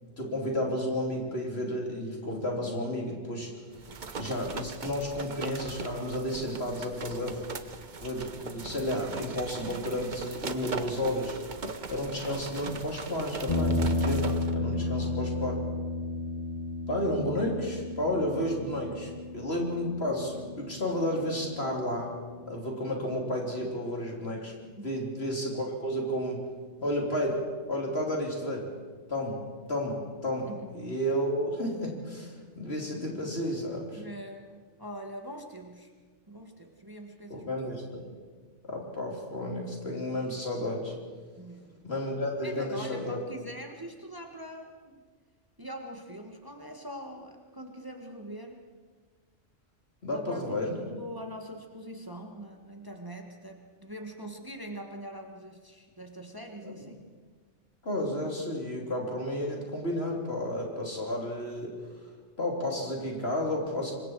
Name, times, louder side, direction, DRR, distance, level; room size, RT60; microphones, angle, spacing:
voice 1, 0.2-3.5 4.2-7.4 8.0-11.4 11.9-14.2 14.5-15.6 16.9-22.1 22.5-24.5 24.8-26.4 26.8-27.4 27.7-28.7 29.1-29.4 29.7-34.0 37.3-38.0 38.7-40.9 41.8-43.2 50.0-50.8 56.6-56.7 57.8-61.7 62.4-63.9, left 1 dB, 55° left, 0 dB, 4.0 m, -32 dB
sound 1, 3.7-14.5, right 4 dB, 40° right, 1.1 m, -40 dB
sound 2, 13.5-21.8, left 2 dB, 35° left, 2.1 m, -32 dB
voice 2, 14.7-15.2 24.8-25.1 30.5-30.9 34.0-35.9 36.3-37.5 41.4-41.8 42.4-45.0 45.6-48.6 50.1-57.0, equal, 20° right, 3 dB, 1.7 m, -43 dB
26.0 x 23.0 x 4.8 m, 1.5 s
omnidirectional pair, 1.2 m